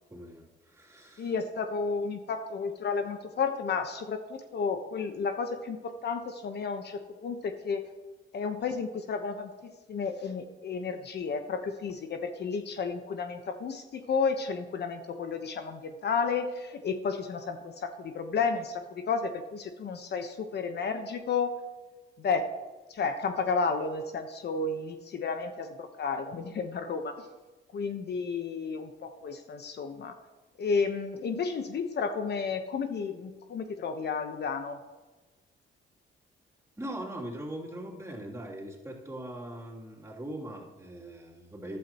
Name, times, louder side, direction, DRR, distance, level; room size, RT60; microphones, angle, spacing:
voice 1, 0.1-1.3 36.8-41.8, right 1 dB, 15° right, -3 dB, 3.0 m, -41 dB
voice 2, 1.2-7.8 8.3-21.5 22.2-22.5 22.9-27.3 27.7-30.1 30.6-34.8, left 5 dB, 55° left, 6 dB, 1.1 m, -32 dB
14.5 x 11.5 x 3.0 m, 1.2 s
cardioid pair, 90°, 20 cm